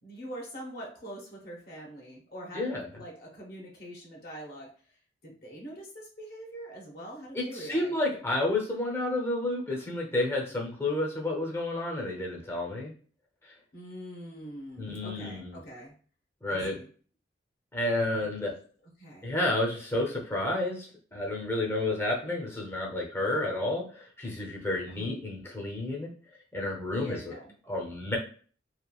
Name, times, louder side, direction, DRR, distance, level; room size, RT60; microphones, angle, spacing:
voice 1, 0.0-2.7 2.9-4.7 5.2-7.9 13.7-15.9 16.5-16.9 19.0-19.4 24.9-25.2 27.0-27.5, right 1 dB, 55° left, -2 dB, 0.7 m, -44 dB
voice 2, 2.5-2.9 7.3-12.9 14.8-15.6 16.4-16.8 17.7-18.5 19.2-26.1 26.5-27.4 27.7-28.2, left 2 dB, 15° left, -2 dB, 0.6 m, -30 dB
3.0 x 2.3 x 2.2 m, 0.42 s
head